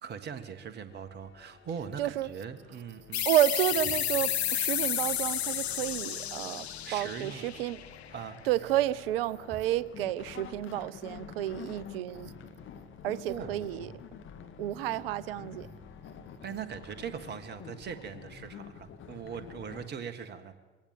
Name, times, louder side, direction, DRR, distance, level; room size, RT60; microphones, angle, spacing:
voice 1, 0.0-3.3 6.8-7.5 8.1-8.4 13.3-13.6 16.4-20.5, right 7 dB, 30° right, 1.6 m, -40 dB
sound 1, 0.9-19.9, left 7 dB, 40° left, 1.8 m, -49 dB
voice 2, 2.0-2.3 3.3-7.8 8.5-12.3 13.0-13.9 14.6-15.7, right 13 dB, 60° right, 0.7 m, -30 dB
sound 2, 3.1-8.4, left 10 dB, 75° left, 0.8 m, -32 dB
22.0 x 18.0 x 7.6 m
figure-of-eight pair, 65°, 32 cm